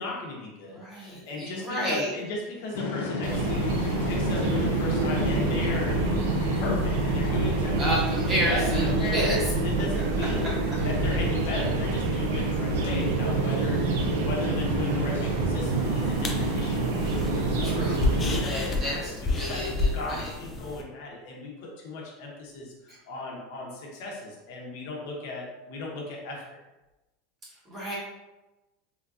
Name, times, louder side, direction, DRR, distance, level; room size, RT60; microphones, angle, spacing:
voice 1, 0.0-6.1 6.5-8.0 8.4-10.5 10.8-13.8 14.2-16.9 17.5-17.8 18.2-26.6, left 2 dB, 55° left, -2 dB, 0.9 m, -36 dB
voice 2, 0.7-2.1 7.8-9.3 17.6-18.1 18.5-20.3 27.7-27.9, equal, 20° right, -6 dB, 0.8 m, -30 dB
sound 1, 2.7-18.9, left 3 dB, 90° left, 0.5 m, -36 dB
sound 2, 3.2-18.4, right 3 dB, 85° right, 0.5 m, -27 dB
sound 3, 15.6-20.8, left 2 dB, 15° left, 0.3 m, -31 dB
3.8 x 2.4 x 2.5 m, 1.0 s
supercardioid pair, 170°, 0 cm